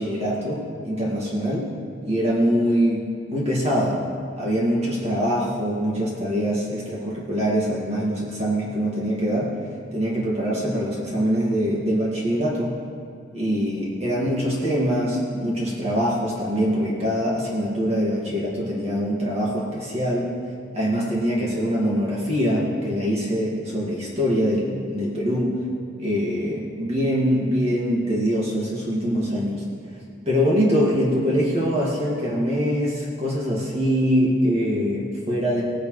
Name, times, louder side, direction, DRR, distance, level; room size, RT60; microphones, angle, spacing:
voice 1, 0.0-1.7 2.1-3.0 3.3-4.0 4.4-9.5 9.9-12.7 13.3-20.3 20.7-25.5 26.0-29.6 30.3-35.6, equal, 30° right, -6 dB, 2.0 m, -23 dB
18.5 x 10.0 x 3.2 m, 2.3 s
head